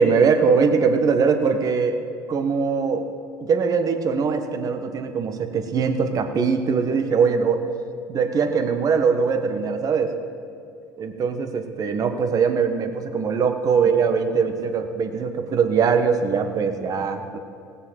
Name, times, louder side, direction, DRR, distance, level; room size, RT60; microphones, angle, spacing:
voice 1, 0.0-2.0 2.3-3.0 3.4-7.6 8.1-10.1 11.0-17.4, right 5 dB, 45° right, 7 dB, 1.4 m, -21 dB
17.5 x 7.3 x 7.5 m, 2.6 s
hypercardioid pair, 80°, 9 cm